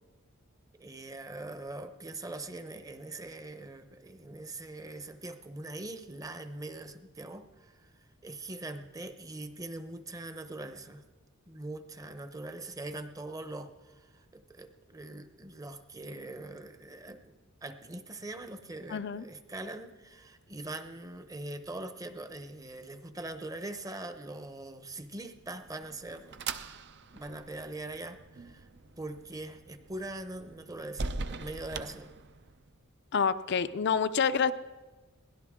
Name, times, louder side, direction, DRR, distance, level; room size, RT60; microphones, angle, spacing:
voice 1, 0.7-7.9 8.2-11.0 11.5-17.2 17.6-26.4 27.1-28.7 29.0-32.1, right 2 dB, 15° right, 9 dB, 0.9 m, -42 dB
voice 2, 18.9-19.2 33.1-34.5, left 6 dB, 55° left, 12 dB, 0.5 m, -27 dB
sound 1, 25.4-32.7, right 3 dB, 55° right, 0.7 m, -42 dB
22.0 x 17.0 x 3.7 m, 1.3 s
head